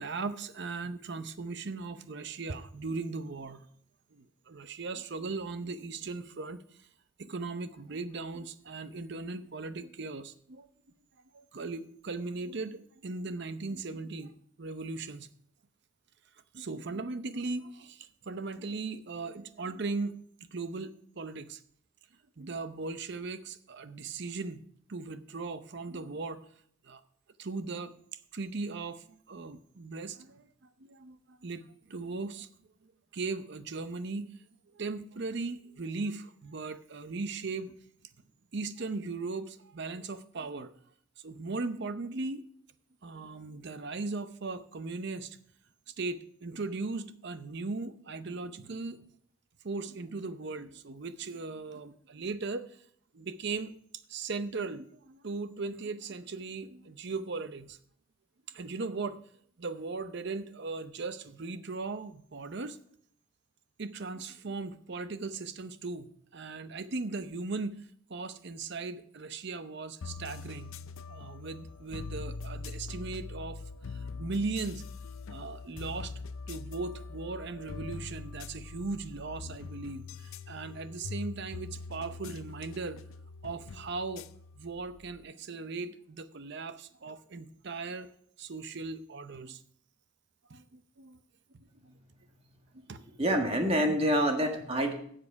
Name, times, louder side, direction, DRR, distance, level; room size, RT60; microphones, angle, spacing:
voice 1, 0.0-3.7 4.1-6.6 7.2-10.7 11.3-14.3 14.6-15.3 16.5-20.2 20.5-21.6 22.4-24.6 24.9-26.4 26.8-27.0 27.4-27.9 28.3-30.5 30.8-32.5 32.8-34.3 34.7-37.7 38.5-40.7 41.2-42.4 43.0-45.4 46.0-49.0 49.6-52.7 53.1-53.7 54.1-57.8 58.5-59.2 59.6-62.8 63.8-67.8 68.1-70.8 71.1-73.6 73.9-74.8 75.3-76.1 76.5-83.0 83.4-84.3 84.5-88.1 88.4-89.6 90.5-91.2 91.8-91.9 92.7-93.0, right 3 dB, 55° right, 12 dB, 0.7 m, -38 dB
sound 1, 70.0-85.3, left 4 dB, 85° left, 0.5 m, -43 dB
voice 2, 93.1-94.9, equal, 30° right, 3 dB, 1.5 m, -27 dB
13.5 x 7.6 x 4.7 m, 0.64 s
head